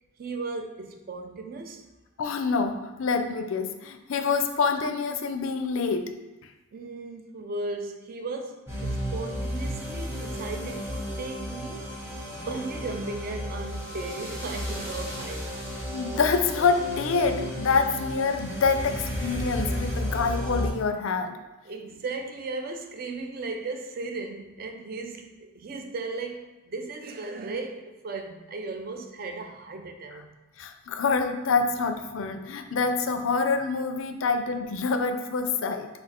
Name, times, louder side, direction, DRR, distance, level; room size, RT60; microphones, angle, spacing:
voice 1, 0.2-1.8 6.7-12.0 12.3-15.5 21.6-30.4, right 3 dB, 45° right, 5 dB, 0.4 m, -36 dB
voice 2, 2.2-6.1 15.9-21.4 30.6-35.9, left 4 dB, 70° left, 7 dB, 0.4 m, -26 dB
sound 1, 8.7-20.7, equal, 10° right, 0.9 m, -33 dB
4.2 x 2.6 x 4.2 m, 1.1 s
head